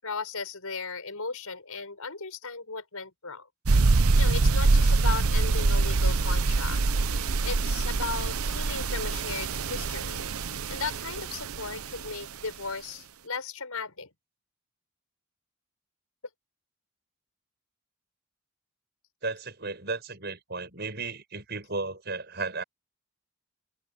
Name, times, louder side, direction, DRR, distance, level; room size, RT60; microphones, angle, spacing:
voice 1, 0.0-3.5 4.2-6.8 7.2-10.2 10.5-14.1, left 4 dB, 85° left, 5.8 m, -36 dB
sound 1, 3.7-12.1, right 3 dB, 80° right, 0.8 m, -25 dB
voice 2, 19.2-22.6, right 3 dB, 50° right, 6.3 m, -34 dB
head